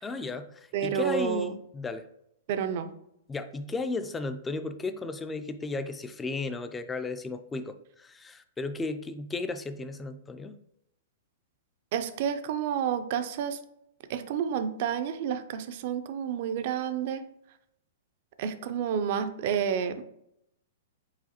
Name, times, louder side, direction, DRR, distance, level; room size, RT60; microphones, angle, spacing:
voice 1, 0.0-2.0 3.3-10.5, left 3 dB, 10° left, 9 dB, 0.3 m, -34 dB
voice 2, 0.7-1.5 2.5-2.9 11.9-13.6 14.1-17.2 18.4-20.0, right 8 dB, 55° right, 10 dB, 0.4 m, -30 dB
4.8 x 3.8 x 2.8 m, 0.77 s
hypercardioid pair, 135°, 0 cm